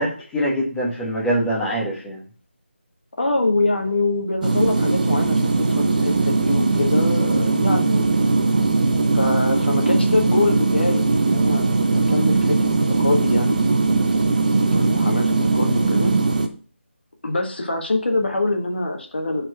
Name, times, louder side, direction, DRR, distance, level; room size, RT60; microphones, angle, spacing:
voice 1, 0.0-2.2, right 1 dB, 5° left, -5 dB, 1.1 m, -24 dB
voice 2, 3.2-8.1 9.1-12.6 13.0-13.6 14.7-16.1 17.2-19.5, left 2 dB, 55° left, 3 dB, 1.4 m, -24 dB
sound 1, 4.4-16.5, right 3 dB, 40° right, 0.6 m, -19 dB
4.4 x 4.3 x 5.8 m, 0.42 s
figure-of-eight pair, 160°, 7 cm